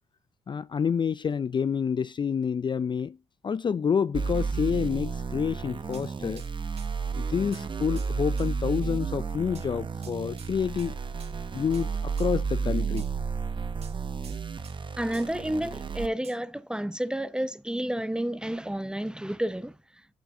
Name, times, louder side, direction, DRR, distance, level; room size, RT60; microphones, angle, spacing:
voice 1, 0.5-3.2 3.4-6.4 7.2-10.9 11.5-13.1, left 7 dB, 35° left, 0.4 m, -28 dB
sound 1, 4.1-16.1, right 5 dB, 40° right, 1.0 m, -32 dB
sound 2, 5.9-6.1 6.4-6.5 6.8-6.9 7.5-7.7 8.0-8.1 8.4-8.5 9.5-9.7 10.0-10.5 10.8-10.9 11.2-11.4 11.7-11.9 12.2-12.3 13.0-13.1 13.8-14.8 15.1-15.3 16.2-16.4, right 6 dB, 55° right, 1.4 m, -50 dB
voice 2, 15.0-19.8, right 1 dB, 5° right, 0.8 m, -30 dB
11.5 x 4.5 x 3.8 m
hypercardioid pair, 45°, 13 cm